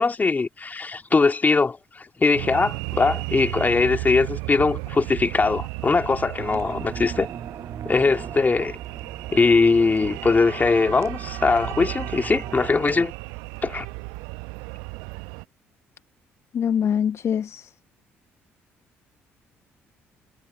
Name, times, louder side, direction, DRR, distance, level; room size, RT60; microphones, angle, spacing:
voice 1, 0.0-7.3 7.8-8.8 9.3-13.1 13.6-13.8, left 4 dB, 25° left, 3.2 m, -21 dB
sound 1, 2.3-15.4, right 30 dB, 65° right, 1.2 m, -35 dB
sound 2, 6.4-13.1, right 8 dB, 45° right, 6.5 m, -38 dB
voice 2, 16.5-17.7, left 8 dB, 45° left, 1.0 m, -24 dB
figure-of-eight pair, 45°, 7 cm